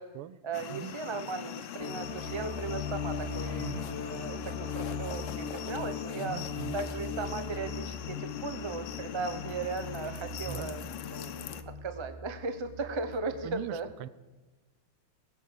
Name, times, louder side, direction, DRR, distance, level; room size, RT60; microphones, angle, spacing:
voice 1, 0.4-6.4 6.7-13.9, right 4 dB, 45° right, 9 dB, 0.3 m, -37 dB
sound 1, 0.5-11.6, left 10 dB, 85° left, 1.7 m, -43 dB
sound 2, 1.8-13.4, left 5 dB, 50° left, 1.4 m, -39 dB
voice 2, 3.6-3.9 6.1-6.8 10.5-10.7 13.4-14.1, right 12 dB, 85° right, 16 dB, 1.6 m, -41 dB
20.5 x 8.3 x 6.6 m, 1.2 s
omnidirectional pair, 2.4 m